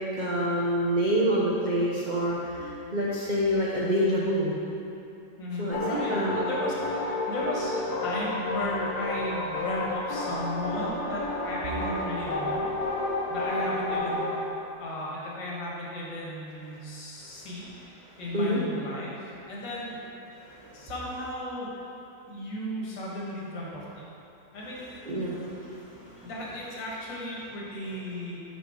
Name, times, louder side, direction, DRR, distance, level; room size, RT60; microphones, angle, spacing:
voice 1, 0.0-4.5 5.6-6.4 17.2-17.5 18.1-18.6 20.4-20.9 25.0-26.3, equal, 85° right, -6 dB, 0.4 m, -28 dB
voice 2, 5.4-12.7 13.3-14.4 14.8-20.0 20.7-21.7 22.2-24.1 24.5-25.1 26.2-28.4, left 1 dB, 85° left, -5 dB, 2.0 m, -35 dB
sound 1, 5.7-14.5, left 2 dB, 65° left, 1.2 m, -31 dB
6.0 x 5.0 x 4.8 m, 2.7 s
omnidirectional pair, 2.0 m